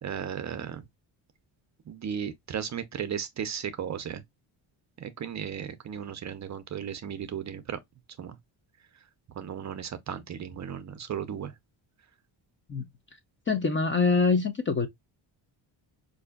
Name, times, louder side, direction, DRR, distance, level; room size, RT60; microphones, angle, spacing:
voice 1, 0.0-0.9 1.9-4.2 5.0-7.8 8.2-8.4 9.4-11.5, right 8 dB, 35° right, 0.5 m, -35 dB
voice 2, 13.5-14.9, left 4 dB, 25° left, 0.5 m, -24 dB
4.7 x 2.6 x 2.2 m
cardioid pair, 125°, 48 cm